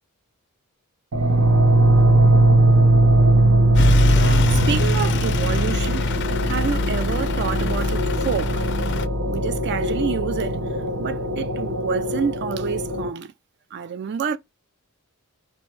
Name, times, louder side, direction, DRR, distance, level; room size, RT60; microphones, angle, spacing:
sound 1, 1.1-13.1, right 1 dB, 75° right, 0.7 m, -19 dB
Truck / Idling, 3.8-9.1, left 3 dB, 55° left, 0.4 m, -25 dB
voice 1, 4.0-6.2 6.4-8.7 9.3-10.6 11.0-13.3 13.7-14.4, right 7 dB, 50° right, 0.4 m, -28 dB
4.2 x 2.2 x 4.5 m
head